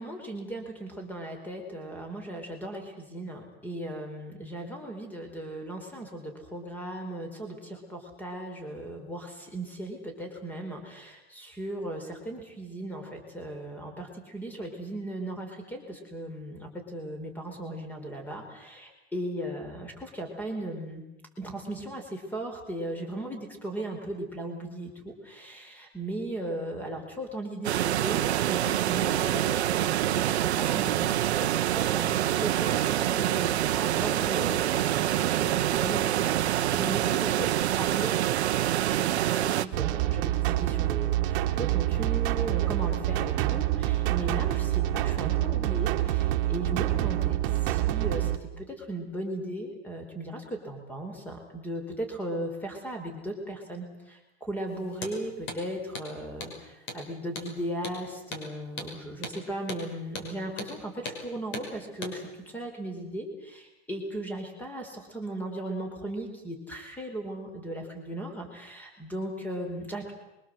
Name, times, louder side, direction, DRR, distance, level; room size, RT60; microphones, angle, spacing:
voice 1, 0.0-21.0 21.4-38.1 38.9-47.4 47.6-48.3 48.6-70.1, right 1 dB, 5° left, 4 dB, 4.7 m, -37 dB
sound 1, 27.6-39.7, right 12 dB, 80° right, 1.2 m, -26 dB
sound 2, 39.7-48.4, right 14 dB, 45° right, 2.1 m, -27 dB
Hammer, 54.9-55.2 55.5-55.6 55.9-56.1 56.4-56.6 56.9-57.0 57.4-57.5 57.8-58.0 58.3-58.5 58.8-58.9 59.2-59.4 59.7-59.8 60.2-60.3 60.6-60.7 61.1-61.2 61.5-61.7 62.0-62.2, left 3 dB, 35° left, 6.0 m, -37 dB
24.5 x 23.5 x 7.9 m, 0.95 s
supercardioid pair, 155°, 32 cm